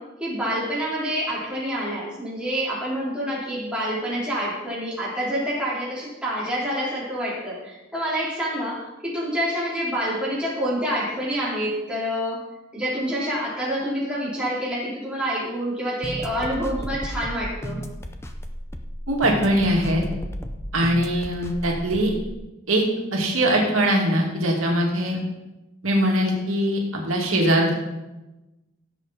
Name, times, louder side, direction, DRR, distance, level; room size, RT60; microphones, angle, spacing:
voice 1, 0.0-12.4 12.7-17.8, equal, 5° right, -8 dB, 4.1 m, -27 dB
sound 1, 16.0-22.4, equal, 10° left, 0.7 m, -33 dB
voice 2, 19.1-20.0 20.7-22.1 22.7-22.8 23.1-25.2 25.8-27.7, right 1 dB, 85° right, -1 dB, 2.5 m, -21 dB
16.0 x 7.6 x 4.2 m, 1.0 s
head